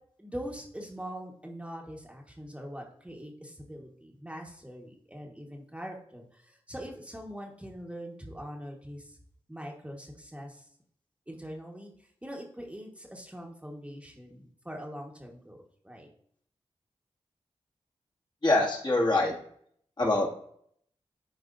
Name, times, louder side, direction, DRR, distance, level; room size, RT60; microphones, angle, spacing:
voice 1, 0.2-9.2 9.5-10.7 11.3-16.1, equal, 10° right, 0 dB, 1.3 m, -43 dB
voice 2, 18.4-19.3 20.0-20.3, left 2 dB, 45° left, -3 dB, 2.0 m, -24 dB
11.0 x 4.2 x 2.6 m, 0.66 s
cardioid pair, 50°, 11 cm